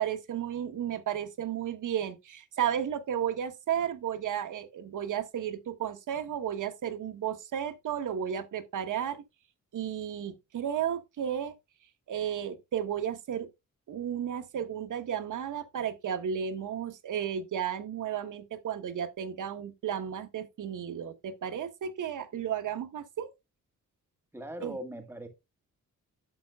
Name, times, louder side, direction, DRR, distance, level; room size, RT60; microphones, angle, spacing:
voice 1, 0.0-9.2 9.7-11.5 12.1-13.5 13.9-23.3 24.6-24.8, right 9 dB, 70° right, 1.0 m, -33 dB
voice 2, 24.3-25.3, right 1 dB, 10° right, 1.6 m, -40 dB
11.0 x 7.3 x 2.3 m
wide cardioid pair, 120°, 32 cm